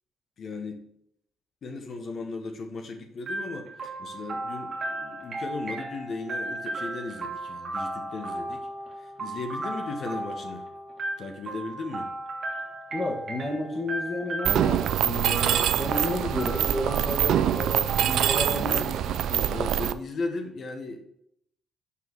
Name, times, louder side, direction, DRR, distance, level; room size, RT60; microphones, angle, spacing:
voice 1, 0.4-0.9 1.6-8.7 9.0-10.6 11.2-12.1 17.0-17.3 18.5-18.9 19.4-21.0, left 3 dB, 55° left, 4 dB, 1.1 m, -36 dB
sound 1, 3.3-19.0, right 2 dB, 45° right, 1.7 m, -36 dB
voice 2, 12.9-19.5, left 1 dB, 35° left, -4 dB, 1.6 m, -32 dB
Mechanisms, 14.4-19.9, right 10 dB, 80° right, 0.3 m, -25 dB
5.7 x 4.7 x 6.1 m, 0.72 s
cardioid pair, 90°, 0 cm